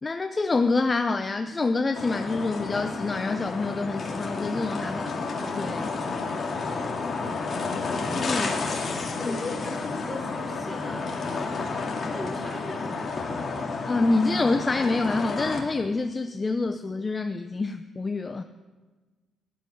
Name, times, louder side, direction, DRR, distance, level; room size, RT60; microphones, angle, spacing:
voice 1, 0.0-5.1 5.6-6.0 8.2-8.5 9.3-9.4 13.9-18.4, left 3 dB, 25° left, 8 dB, 0.6 m, -26 dB
sound 1, 1.9-15.6, left 4 dB, 45° left, 2.4 m, -31 dB
voice 2, 8.3-8.8 9.2-11.1 12.1-13.2, left 2 dB, 5° left, -3 dB, 5.5 m, -37 dB
13.5 x 7.5 x 10.0 m, 1.3 s
cardioid pair, 90°, 0 cm